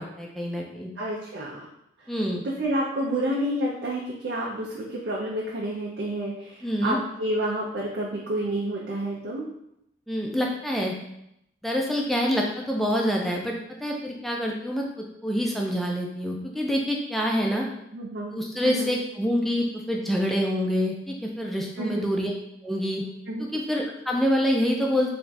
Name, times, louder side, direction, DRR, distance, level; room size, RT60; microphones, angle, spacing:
voice 1, 0.0-0.9 2.1-2.4 6.6-7.0 10.1-10.9 11.6-13.5 13.8-14.8 15.2-17.6 18.3-22.3 22.6-23.0 23.5-25.1, equal, ahead, -1 dB, 0.4 m, -26 dB
voice 2, 1.0-1.7 2.0-2.2 2.4-9.5 17.9-18.4 18.6-19.0 21.7-22.1 23.3-23.5, right 1 dB, 70° right, -4 dB, 0.5 m, -29 dB
3.3 x 2.4 x 4.0 m, 0.78 s
head